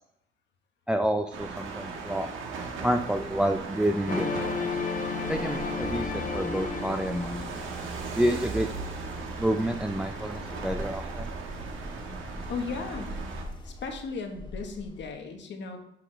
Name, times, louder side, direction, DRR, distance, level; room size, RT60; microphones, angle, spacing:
voice 1, 0.9-2.3 2.8-4.5 5.3-7.5 8.1-8.7 9.4-11.3, right 1 dB, 5° right, 5 dB, 0.5 m, -28 dB
sound 1, 1.3-13.4, right 4 dB, 80° right, 1.6 m, -37 dB
sound 2, 4.1-7.9, left 5 dB, 40° left, 1.1 m, -33 dB
sound 3, 5.8-15.1, left 1 dB, 25° left, 1.5 m, -42 dB
voice 2, 12.5-13.2 13.6-15.8, left 4 dB, 65° left, 4 dB, 1.5 m, -36 dB
10.0 x 5.8 x 3.4 m, 0.83 s
cardioid pair, 90°, 20 cm